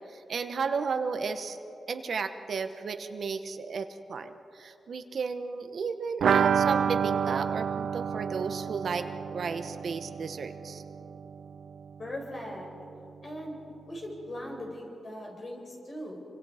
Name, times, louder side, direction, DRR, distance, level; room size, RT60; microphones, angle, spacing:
voice 1, 0.1-1.6 1.9-10.8, right 5 dB, 55° right, 8 dB, 1.0 m, -34 dB
sound 1, 6.2-11.8 12.1-12.2 12.5-12.6, right 7 dB, 85° right, 0.4 m, -29 dB
voice 2, 12.0-12.7 13.2-13.6 13.9-16.2, left 1 dB, 40° left, 0 dB, 5.2 m, -39 dB
28.5 x 25.0 x 5.0 m, 2.8 s
wide cardioid pair, 160°, 0 cm